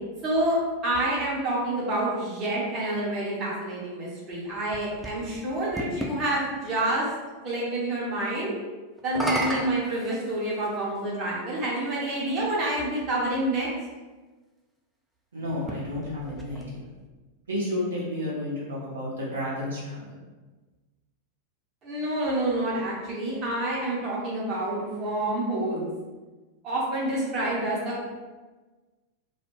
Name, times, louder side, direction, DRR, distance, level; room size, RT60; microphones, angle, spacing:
voice 1, 0.2-0.6 0.8-7.0 7.4-8.6 9.0-13.7 21.8-25.9 26.6-28.2, right 1 dB, 35° right, -6 dB, 0.8 m, -28 dB
sound 1, 4.3-6.2 9.0-10.8 11.7-11.8 15.5-17.1, equal, 5° right, 0.4 m, -34 dB
voice 2, 15.3-16.8 17.5-20.2, left 1 dB, 70° right, -7 dB, 0.7 m, -31 dB
2.3 x 2.1 x 3.1 m, 1.3 s
figure-of-eight pair, 90°, 0 cm